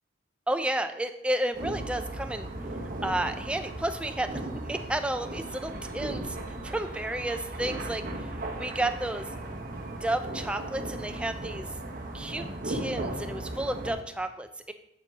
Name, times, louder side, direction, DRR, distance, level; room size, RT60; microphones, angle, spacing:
voice 1, 0.5-2.5 3.0-6.4 6.6-8.3 8.6-9.3 10.0-11.7 12.1-14.7, right 1 dB, 5° right, 8 dB, 0.3 m, -32 dB
sound 1, 1.5-13.9, right 1 dB, 45° right, 0.9 m, -36 dB
6.7 x 6.7 x 3.5 m, 0.85 s
head